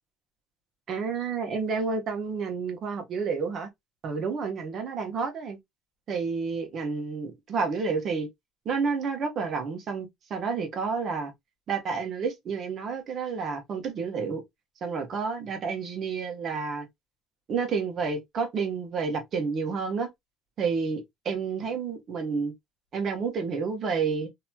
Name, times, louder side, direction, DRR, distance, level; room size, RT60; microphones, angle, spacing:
voice 1, 0.9-3.7 4.0-5.6 6.1-8.3 8.6-11.3 11.7-14.4 14.8-16.9 17.5-20.1 20.6-22.5 22.9-24.3, right 5 dB, 45° right, 1.1 m, -30 dB
3.0 x 2.8 x 2.2 m
cardioid pair, 120°, 0 cm